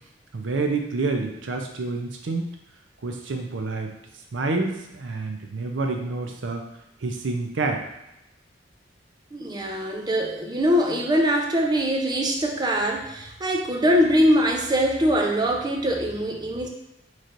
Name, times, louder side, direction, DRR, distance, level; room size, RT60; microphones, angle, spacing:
voice 1, 0.3-2.5 3.0-3.9 4.3-6.6 7.0-7.8, right 3 dB, 85° right, 3 dB, 0.6 m, -28 dB
voice 2, 9.3-16.7, equal, 25° right, 1 dB, 0.5 m, -22 dB
4.3 x 3.2 x 2.5 m, 0.88 s
head